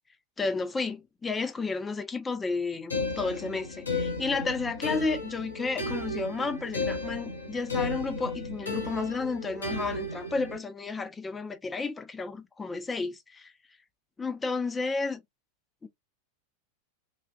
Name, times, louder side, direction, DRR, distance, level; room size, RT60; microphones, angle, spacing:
voice 1, 0.4-13.5 14.2-15.2 15.8-15.9, left 4 dB, 15° left, 0.7 m, -32 dB
sound 1, 2.9-10.6, left 3 dB, 75° left, 1.0 m, -34 dB
3.2 x 2.4 x 2.3 m
figure-of-eight pair, 90°, 0 cm